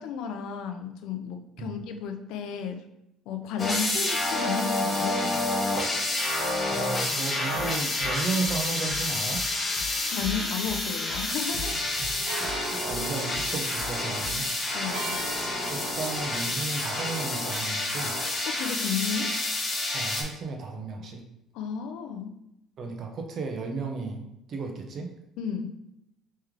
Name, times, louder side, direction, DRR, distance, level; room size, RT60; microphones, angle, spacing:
voice 1, 0.0-2.8 3.3-5.5 10.1-11.8 12.7-12.9 14.7-15.2 18.6-19.4 21.5-22.4 25.4-25.7, left 7 dB, 80° left, 7 dB, 0.5 m, -33 dB
sound 1, 3.6-20.2, left 2 dB, 25° left, 0.9 m, -29 dB
voice 2, 6.7-9.4 12.0-12.1 12.4-14.5 15.7-18.2 19.9-21.2 22.8-25.1, right 4 dB, 50° right, 3 dB, 0.7 m, -34 dB
sound 2, 7.5-14.5, right 1 dB, 50° left, 1.0 m, -42 dB
sound 3, 11.4-16.5, right 3 dB, 85° right, 1.1 m, -40 dB
3.2 x 3.1 x 3.6 m, 0.82 s
cardioid pair, 115°, 0 cm